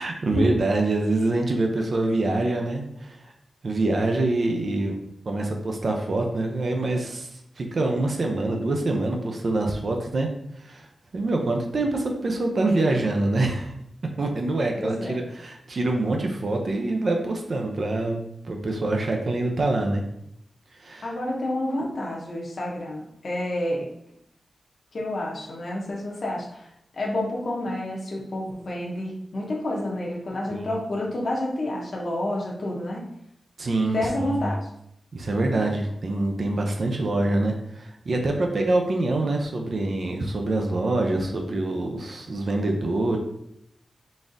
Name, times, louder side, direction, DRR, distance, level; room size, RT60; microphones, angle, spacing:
voice 1, 0.0-3.3 3.6-5.0 5.3-10.3 10.6-10.9 11.1-13.7 14.2-20.0 20.7-21.2 30.5-30.8 33.6-34.5 35.1-43.2, right 2 dB, 50° right, 2 dB, 0.5 m, -25 dB
voice 2, 14.8-15.2 21.0-23.9 24.9-26.7 26.9-33.0 33.9-34.6, left 1 dB, 50° left, -2 dB, 0.7 m, -29 dB
4.0 x 3.5 x 2.5 m, 0.75 s
wide cardioid pair, 155°, 0 cm